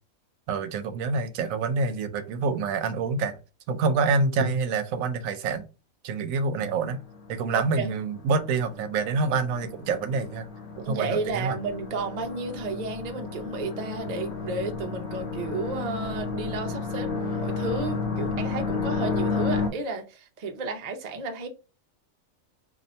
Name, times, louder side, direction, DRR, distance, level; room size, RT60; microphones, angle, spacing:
voice 1, 0.5-3.4 3.7-5.6 6.0-7.0 7.3-10.5 10.8-11.6, right 4 dB, 80° right, 1.0 m, -27 dB
sound 1, 6.5-19.7, left 4 dB, 45° left, 0.8 m, -32 dB
voice 2, 7.5-7.9 10.8-21.5, right 3 dB, 45° right, 0.5 m, -32 dB
2.7 x 2.6 x 4.2 m
omnidirectional pair, 1.4 m